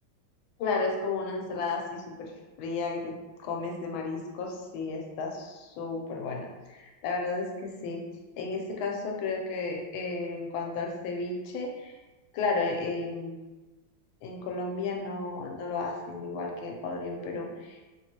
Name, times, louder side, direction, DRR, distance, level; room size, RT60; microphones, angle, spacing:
voice 1, 0.6-2.3 2.6-3.1 3.4-8.0 8.4-11.9 12.3-13.6 14.2-17.8, left 3 dB, 85° left, 1 dB, 1.5 m, -33 dB
3.6 x 3.3 x 2.8 m, 1.2 s
omnidirectional pair, 2.1 m